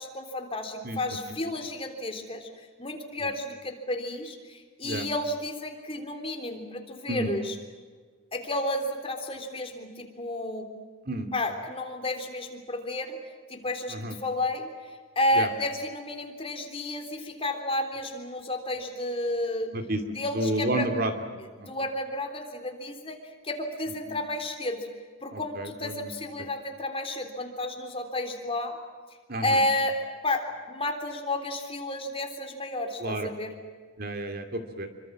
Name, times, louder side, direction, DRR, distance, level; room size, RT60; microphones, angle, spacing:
voice 1, 0.0-2.5 2.8-7.6 8.3-10.7 11.3-13.2 13.5-14.7 15.2-19.7 20.2-20.9 21.6-23.2 23.4-24.8 25.2-28.8 29.4-33.5, left 1 dB, 30° left, 4 dB, 3.5 m, -31 dB
voice 2, 19.7-21.1 21.6-21.7 25.3-26.1 29.3-29.6 33.0-33.3 34.0-34.9, right 1 dB, 50° right, 6 dB, 2.7 m, -31 dB
27.5 x 24.5 x 7.5 m, 1.5 s
head